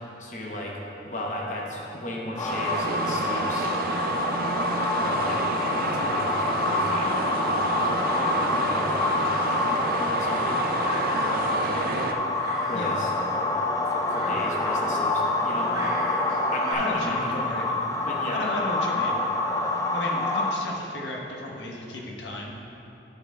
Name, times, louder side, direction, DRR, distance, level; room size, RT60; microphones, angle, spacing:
voice 1, 0.2-3.7 5.0-8.0 8.3-10.7 11.2-12.1 12.7-13.1 13.8-16.0 16.3-18.4, left 1 dB, 45° left, -2 dB, 0.9 m, -36 dB
sound 1, 2.4-20.5, left 2 dB, 20° left, 0.3 m, -27 dB
sound 2, 2.5-12.1, right 3 dB, 55° right, 0.4 m, -30 dB
sound 3, 7.7-16.7, right 1 dB, 20° right, 1.0 m, -39 dB
voice 2, 16.8-17.7 18.3-19.2 19.6-22.6, left 1 dB, 85° left, -1 dB, 1.0 m, -34 dB
9.8 x 4.4 x 4.4 m, 3.0 s
head